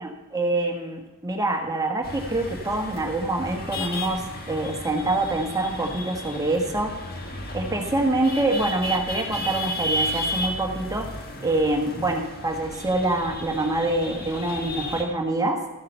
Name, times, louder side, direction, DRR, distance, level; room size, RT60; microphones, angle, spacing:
voice 1, 0.0-6.9 7.5-11.1 11.4-15.6, right 2 dB, 15° right, 3 dB, 1.4 m, -25 dB
sound 1, 2.0-15.0, equal, 45° left, 1.7 m, -33 dB
14.0 x 8.8 x 5.6 m, 1.2 s
head